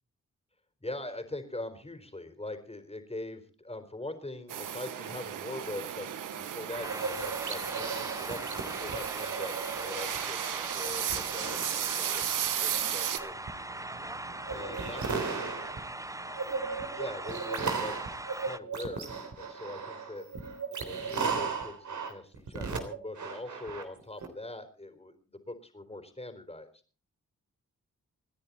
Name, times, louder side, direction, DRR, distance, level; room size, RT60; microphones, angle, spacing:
voice 1, 0.8-13.4 14.5-15.0 16.9-18.0 18.4-19.1 19.4-20.3 20.7-26.7, left 2 dB, 20° left, 8 dB, 4.4 m, -42 dB
sound 1, 4.5-13.2, right 10 dB, 85° right, 1.4 m, -35 dB
sound 2, 6.7-10.2 10.6-24.3, right 5 dB, 70° right, 3.6 m, -37 dB
sound 3, 6.8-18.6, right 2 dB, 10° right, 0.8 m, -40 dB
27.5 x 10.0 x 4.2 m, 0.39 s
supercardioid pair, 45°, 31 cm